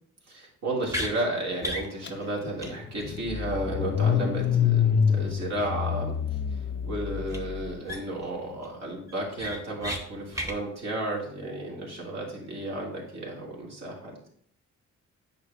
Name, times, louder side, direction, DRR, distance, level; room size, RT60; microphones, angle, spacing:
voice 1, 0.3-6.1 6.5-14.2, right 1 dB, 60° right, -2 dB, 2.4 m, -33 dB
sound 1, 0.9-1.1 1.6-1.9 2.2-2.3 2.6-2.7 3.0-3.1 7.3-7.4 7.9-8.2 8.6-8.7 9.1-10.0 10.3-10.6, equal, 10° right, 1.1 m, -33 dB
Car / Engine starting, 2.0-2.1 2.5-7.7, left 7 dB, 40° left, 0.4 m, -26 dB
8.1 x 5.7 x 2.5 m, 0.64 s
cardioid pair, 90°, 30 cm